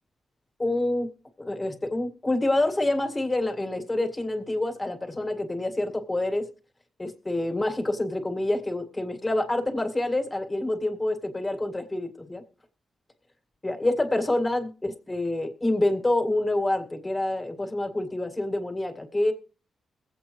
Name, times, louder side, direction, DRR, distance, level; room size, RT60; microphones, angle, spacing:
voice 1, 0.6-1.1 1.4-6.5 7.0-12.4 13.6-19.3, left 1 dB, 20° left, 5 dB, 1.9 m, -27 dB
21.5 x 8.1 x 3.1 m, 0.38 s
cardioid pair, 105°, 0 cm